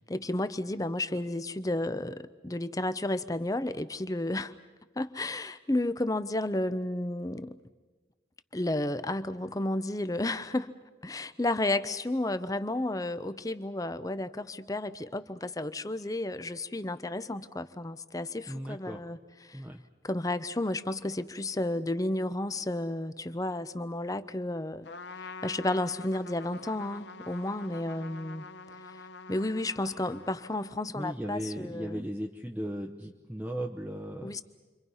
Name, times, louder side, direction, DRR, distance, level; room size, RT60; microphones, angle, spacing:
voice 1, 0.1-4.5 5.0-7.6 8.5-10.7 11.0-19.2 19.5-19.6 20.0-24.9 25.4-28.5 29.3-32.1 34.2-34.4, left 1 dB, 20° left, 13 dB, 0.7 m, -32 dB
voice 2, 18.5-19.0 19.5-19.8 30.9-34.4, equal, 10° right, 0 dB, 0.9 m, -37 dB
Trumpet, 24.8-31.0, left 4 dB, 75° left, 0.8 m, -46 dB
29.5 x 24.0 x 5.6 m, 1.3 s
head